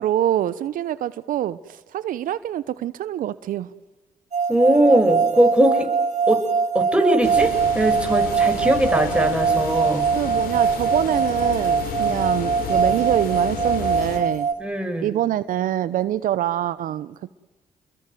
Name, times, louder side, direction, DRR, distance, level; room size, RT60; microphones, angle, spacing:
voice 1, 0.0-3.7 10.1-14.5 15.0-17.3, right 12 dB, 75° right, 16 dB, 0.9 m, -25 dB
sound 1, 4.3-14.5, right 6 dB, 55° right, 3.1 m, -22 dB
voice 2, 4.5-5.9 6.3-6.4 6.7-10.0 14.6-15.1, right 1 dB, 5° right, 5 dB, 6.9 m, -20 dB
sound 2, 7.2-14.2, left 6 dB, 80° left, 4.2 m, -32 dB
29.5 x 22.0 x 9.4 m, 1.2 s
hypercardioid pair, 50°, 15 cm